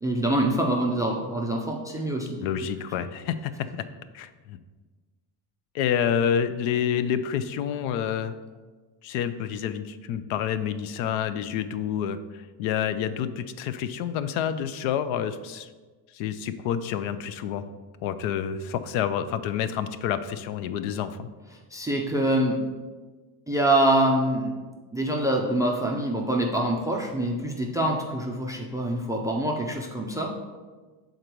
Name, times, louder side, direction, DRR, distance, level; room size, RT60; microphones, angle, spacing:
voice 1, 0.0-2.4 21.7-22.6 23.5-24.5 24.9-30.3, right 1 dB, 10° right, 0 dB, 0.3 m, -25 dB
voice 2, 2.4-3.9 4.1-4.6 5.7-8.3 9.0-15.7 16.1-17.6 18.0-21.3, left 8 dB, 70° left, 12 dB, 0.6 m, -28 dB
6.6 x 3.9 x 4.5 m, 1.3 s
cardioid pair, 125°, 49 cm